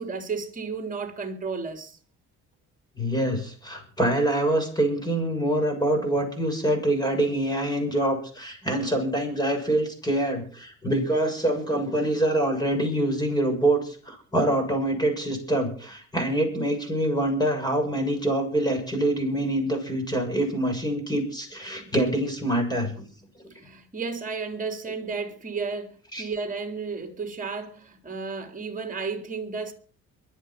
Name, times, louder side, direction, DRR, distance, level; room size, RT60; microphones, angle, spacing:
voice 1, 0.0-2.0 23.5-29.7, right 4 dB, 25° right, 3.7 m, -33 dB
voice 2, 3.0-23.0 26.1-26.2, right 1 dB, 15° left, 6.8 m, -25 dB
23.0 x 8.4 x 6.0 m
cardioid pair, 125°, 31 cm